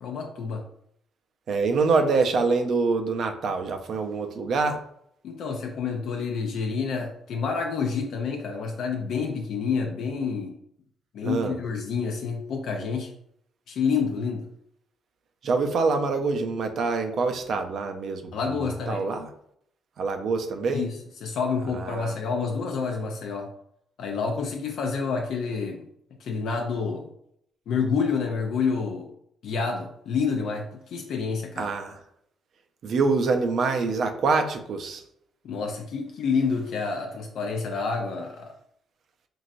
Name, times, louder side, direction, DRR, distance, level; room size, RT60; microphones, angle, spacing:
voice 1, 0.0-0.6 5.2-10.5 11.1-13.1 13.7-14.5 18.3-19.1 20.7-23.5 24.0-25.8 26.2-27.1 27.7-29.1 29.4-31.6 35.4-38.5, left 5 dB, 70° left, 2 dB, 0.4 m, -28 dB
voice 2, 1.5-4.8 11.2-11.6 15.4-19.3 20.0-20.8 21.7-22.2 31.6-32.0 32.8-35.0, right 4 dB, 65° right, 6 dB, 0.4 m, -25 dB
3.0 x 2.6 x 2.5 m, 0.70 s
cardioid pair, 90°, 0 cm